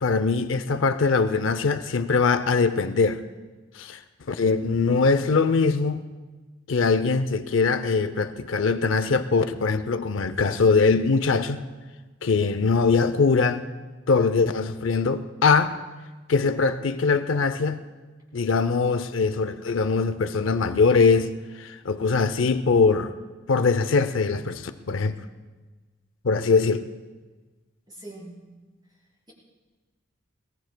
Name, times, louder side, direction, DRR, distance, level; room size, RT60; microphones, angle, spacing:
voice 1, 0.0-3.2 3.8-4.0 4.3-6.0 6.7-11.6 12.2-13.6 14.1-15.8 16.3-17.8 18.3-21.3 21.6-23.1 23.5-25.2 26.2-26.9, left 4 dB, 85° left, 0.6 m, -22 dB
voice 2, 27.9-28.5, right 1 dB, 25° right, 4.9 m, -42 dB
22.5 x 20.0 x 2.2 m
head